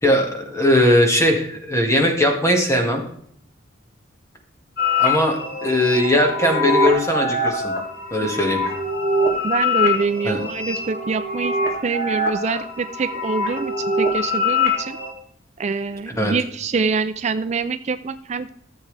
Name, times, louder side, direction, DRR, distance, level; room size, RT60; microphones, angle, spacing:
voice 1, 0.0-3.0 5.0-7.7 8.1-8.6 10.2-10.4 16.2-16.3, left 1 dB, 15° left, 2 dB, 1.9 m, -19 dB
sound 1, 4.8-15.1, left 2 dB, 50° left, 2.4 m, -23 dB
voice 2, 9.4-11.6 11.8-15.0 15.6-18.5, right 4 dB, 35° right, 10 dB, 0.4 m, -25 dB
14.5 x 7.4 x 3.3 m, 0.65 s
head